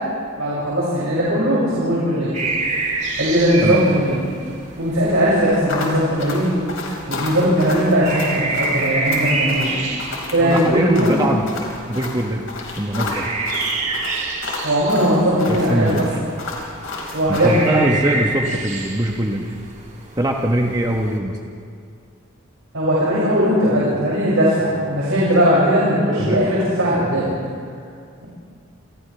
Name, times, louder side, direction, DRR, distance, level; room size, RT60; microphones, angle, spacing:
voice 1, 0.4-2.4 3.2-4.2 4.8-6.5 7.1-9.7 10.3-11.2 14.6-16.0 17.1-18.1 22.7-27.3, equal, 90° right, -8 dB, 6.5 m, -18 dB
sound 1, 2.3-21.2, right 3 dB, 35° right, 3.0 m, -29 dB
sound 2, 5.7-17.7, left 3 dB, 75° left, 5.1 m, -31 dB
voice 2, 10.4-12.5 12.8-13.3 15.5-16.1 17.3-19.6 20.2-21.4 26.2-26.4, right 1 dB, 20° right, 1 dB, 1.2 m, -22 dB
29.0 x 28.5 x 3.4 m, 2.2 s
head